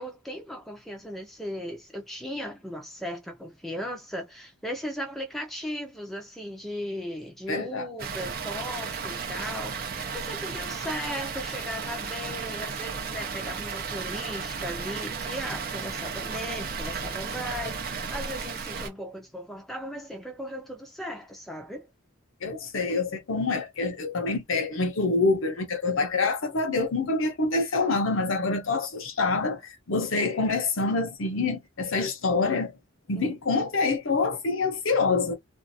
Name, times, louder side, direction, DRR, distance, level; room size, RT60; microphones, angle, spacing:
voice 1, 0.0-21.9 33.2-33.4, equal, ahead, 0.6 m, -37 dB
voice 2, 7.5-7.9 22.4-32.7 33.1-35.3, left 3 dB, 65° left, 0.8 m, -26 dB
Water, 8.0-18.9, right 5 dB, 45° right, 0.6 m, -34 dB
2.6 x 2.4 x 2.6 m
head